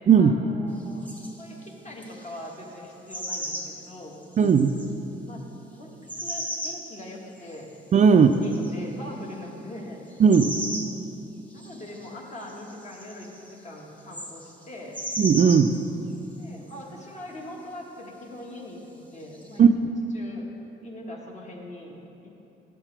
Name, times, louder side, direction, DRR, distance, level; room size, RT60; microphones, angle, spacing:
voice 1, 0.1-1.1 1.4-4.2 5.2-5.4 5.7-7.7 8.1-10.0 11.5-15.0 16.4-19.9 20.1-20.5 20.8-21.9 22.2-22.3, left 1 dB, 35° left, -1 dB, 1.5 m, -41 dB
sound 1, 1.0-1.4 2.0-2.6 3.1-4.9 6.1-6.9 7.4-7.8 8.3-8.7 10.1-11.0 11.5-12.1 12.4-14.6 14.9-15.9 16.1-16.7 19.3-19.6, equal, 5° left, 1.1 m, -36 dB
voice 2, 4.4-4.7 7.9-8.3 10.2-10.6 15.2-15.8 19.6-19.7, right 6 dB, 40° right, 7 dB, 0.4 m, -16 dB
12.0 x 7.2 x 3.4 m, 2.9 s
cardioid pair, 90°, 20 cm